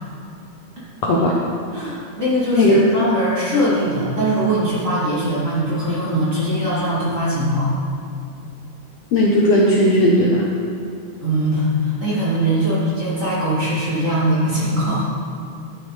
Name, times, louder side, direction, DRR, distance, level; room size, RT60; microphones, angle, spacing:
voice 1, 1.0-1.4 2.6-2.8 9.1-10.5, left 1 dB, 70° left, -3 dB, 1.7 m, -16 dB
voice 2, 1.7-7.7 11.2-15.1, right 1 dB, 25° right, -9 dB, 2.5 m, -21 dB
11.0 x 9.2 x 3.3 m, 2.5 s
omnidirectional pair, 3.6 m